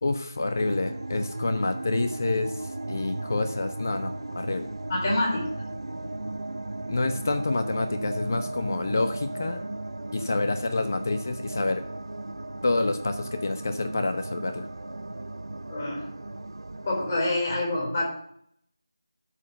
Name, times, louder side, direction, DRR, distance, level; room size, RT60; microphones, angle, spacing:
voice 1, 0.0-4.7 6.9-9.6 10.1-11.8 12.6-14.7, left 2 dB, 40° left, 8 dB, 0.8 m, -28 dB
sound 1, 0.6-17.1, right 2 dB, 75° right, 0.7 m, -36 dB
voice 2, 4.9-5.5 15.7-16.1 16.8-18.1, left 2 dB, 25° left, -4 dB, 4.3 m, -26 dB
12.0 x 4.6 x 6.6 m, 0.67 s
figure-of-eight pair, 170°, 2 cm